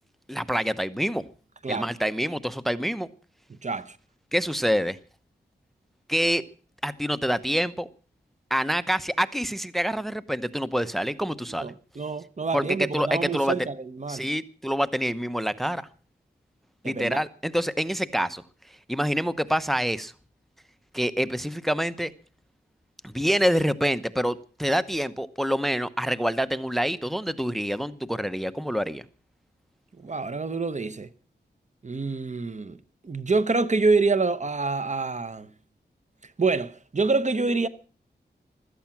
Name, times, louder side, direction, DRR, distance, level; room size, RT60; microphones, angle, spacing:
voice 1, 0.3-1.2 1.7-3.1 4.3-5.0 6.1-6.4 6.8-7.9 8.5-11.7 12.5-12.7 12.9-13.5 14.1-15.9 16.8-18.4 18.9-20.1 20.9-22.1 23.0-29.0, equal, ahead, 0.9 m, -26 dB
voice 2, 3.5-4.0 11.5-14.3 16.8-17.2 30.0-31.1 31.8-32.8 33.0-35.5 36.4-37.7, right 3 dB, 40° right, 1.0 m, -26 dB
16.5 x 13.0 x 5.9 m
wide cardioid pair, 75°, 18 cm